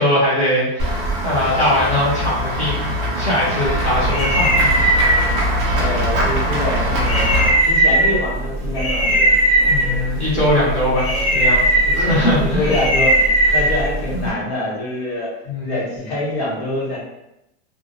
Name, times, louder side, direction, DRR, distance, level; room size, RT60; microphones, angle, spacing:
voice 1, 0.0-4.9 9.7-12.7 14.2-14.3 15.5-15.7, left 1 dB, 20° left, -6 dB, 0.9 m, -21 dB
Run / Walk footsteps / Bell, 0.8-7.5, equal, 25° right, 0.4 m, -22 dB
sound 1, 3.7-14.3, right 1 dB, 50° left, 1.2 m, -19 dB
voice 2, 5.7-9.3 11.8-15.3 15.6-17.0, left 1 dB, 75° left, -5 dB, 1.2 m, -25 dB
2.5 x 2.0 x 2.9 m, 0.85 s
supercardioid pair, 165°, 32 cm